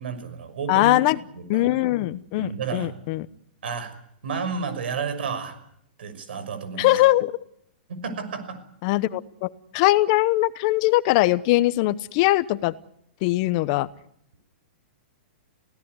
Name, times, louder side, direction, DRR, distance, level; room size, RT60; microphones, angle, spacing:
voice 1, 0.0-1.0 1.3-1.7 2.3-2.9 3.6-3.9 4.2-5.6 6.0-7.0 7.9-8.6, right 5 dB, 80° right, 11 dB, 6.1 m, -31 dB
voice 2, 0.7-1.2 1.5-3.3 6.8-7.3 8.8-12.7 13.2-13.9, left 18 dB, 40° left, 16 dB, 0.9 m, -21 dB
25.0 x 17.0 x 9.6 m, 0.74 s
hypercardioid pair, 160°, 6 cm